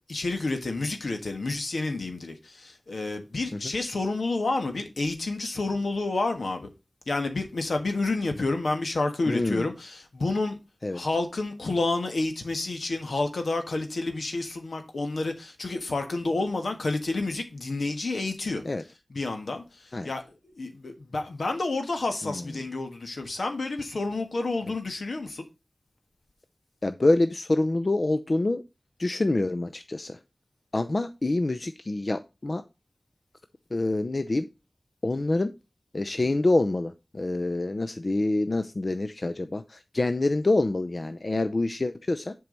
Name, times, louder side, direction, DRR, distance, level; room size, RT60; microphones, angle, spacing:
voice 1, 0.1-6.7 7.1-10.6 10.9-18.6 19.1-20.2 20.6-25.4, left 3 dB, 85° left, 1.6 m, -29 dB
voice 2, 9.3-9.7 10.8-11.0 18.6-18.8 19.9-20.1 22.2-22.4 26.8-28.6 29.0-30.2 30.7-32.6 33.7-34.5 35.0-35.5 35.9-42.3, left 2 dB, 55° left, 0.6 m, -26 dB
7.6 x 4.7 x 5.4 m
cardioid pair, 45°, 0 cm